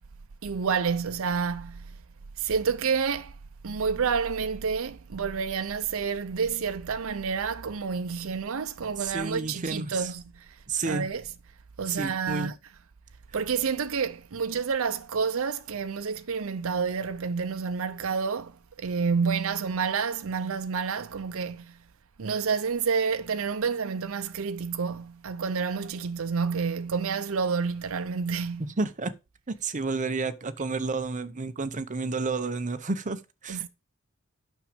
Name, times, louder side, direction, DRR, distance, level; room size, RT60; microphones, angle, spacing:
voice 1, 0.4-1.9 2.4-3.3 3.6-10.5 10.9-11.2 11.8-12.5 13.3-21.7 22.2-28.7 33.5-33.7, right 5 dB, 70° right, 0.6 m, -29 dB
voice 2, 9.1-10.1 10.7-11.1 11.9-12.5 28.6-29.1 29.5-33.7, right 3 dB, 35° right, 0.8 m, -31 dB
9.0 x 6.4 x 5.0 m
head